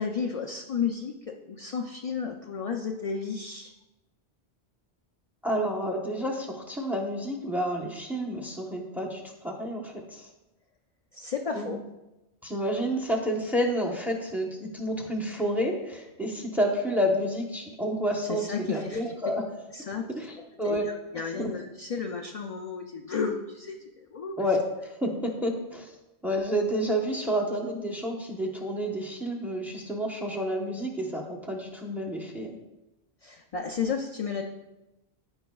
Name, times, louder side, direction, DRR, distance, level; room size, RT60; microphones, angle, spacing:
voice 1, 0.0-3.7 11.1-11.8 18.3-19.1 19.7-20.0 20.6-24.4 33.2-34.4, left 6 dB, 50° left, 3 dB, 0.4 m, -33 dB
voice 2, 5.4-10.3 11.5-11.7 12.4-19.4 20.1-20.8 21.4-21.5 24.4-25.9 26.2-32.6, equal, ahead, 1 dB, 0.9 m, -29 dB
14.0 x 4.8 x 2.3 m, 1.0 s
omnidirectional pair, 1.1 m